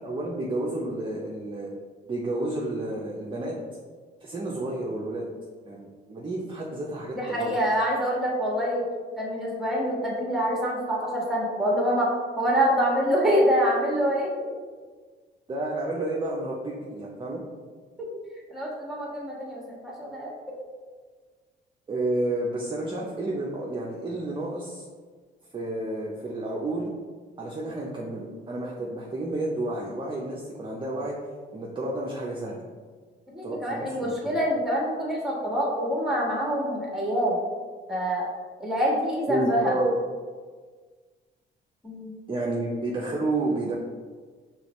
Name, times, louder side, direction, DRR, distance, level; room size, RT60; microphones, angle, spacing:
voice 1, 0.0-1.8 2.0-3.5 4.2-5.3 5.6-7.5 15.5-17.4 21.9-24.9 25.5-26.9 27.4-31.2 31.5-32.6 33.4-34.4 39.3-39.9 42.3-43.8, right 2 dB, 25° right, -3 dB, 0.6 m, -30 dB
voice 2, 7.1-8.9 9.2-12.1 12.4-14.3 18.5-20.3 33.3-37.4 37.9-38.3 38.6-39.8 41.8-42.1, equal, ahead, -3 dB, 1.4 m, -26 dB
4.9 x 3.1 x 3.1 m, 1.5 s
cardioid pair, 90°, 20 cm